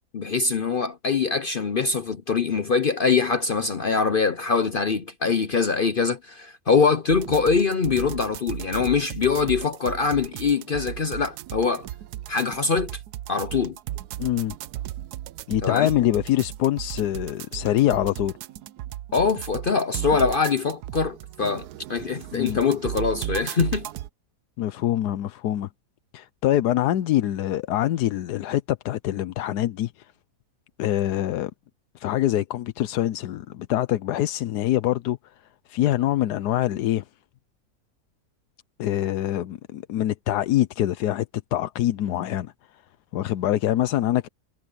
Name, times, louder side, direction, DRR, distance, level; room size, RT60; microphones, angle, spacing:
voice 1, 0.1-11.9 12.3-13.0 13.3-13.8 15.6-15.9 19.1-23.9, left 5 dB, 50° left, 0.7 m, -23 dB
sound 1, 7.1-24.1, right 13 dB, 80° right, 1.1 m, -36 dB
voice 2, 14.2-14.5 15.5-18.4 22.3-22.6 24.6-25.7 26.1-30.1 30.8-31.5 31.9-35.2 35.7-37.0 38.8-42.8 43.1-44.3, left 13 dB, 80° left, 1.2 m, -24 dB
omnidirectional pair, 1.7 m